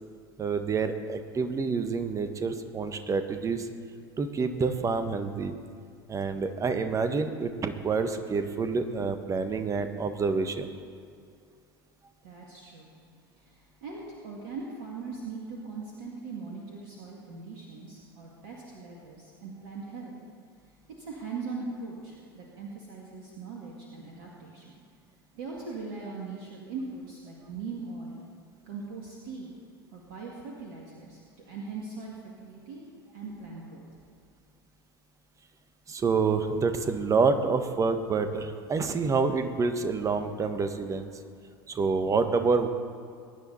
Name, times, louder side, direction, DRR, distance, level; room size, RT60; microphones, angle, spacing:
voice 1, 0.4-3.7 4.2-5.5 6.1-10.7 35.9-41.1 41.7-42.7, right 4 dB, 25° right, 8 dB, 1.3 m, -27 dB
voice 2, 12.2-12.9 13.4-20.1 21.0-24.6 25.3-28.2 28.7-29.5 29.9-32.9 33.1-33.8, right 4 dB, 60° right, -3 dB, 2.3 m, -40 dB
22.5 x 9.8 x 4.2 m, 2.2 s
figure-of-eight pair, 75°, 13 cm